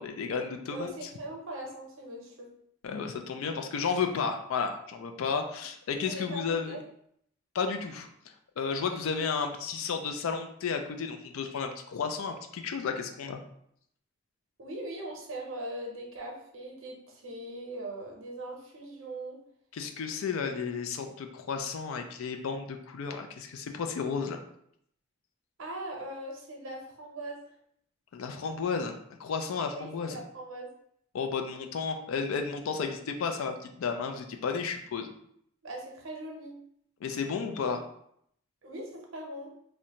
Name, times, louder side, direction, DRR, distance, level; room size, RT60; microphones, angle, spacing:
voice 1, 0.0-1.1 2.8-6.8 7.5-8.1 8.6-13.4 19.7-24.4 28.1-30.2 31.1-35.1 37.0-37.8, left 5 dB, 85° left, 6 dB, 0.4 m, -33 dB
voice 2, 0.7-2.5 6.0-6.8 14.6-19.4 25.6-27.4 29.7-30.7 35.6-36.6 38.6-39.5, right 1 dB, 70° right, 0 dB, 0.7 m, -40 dB
2.5 x 2.2 x 2.8 m, 0.70 s
head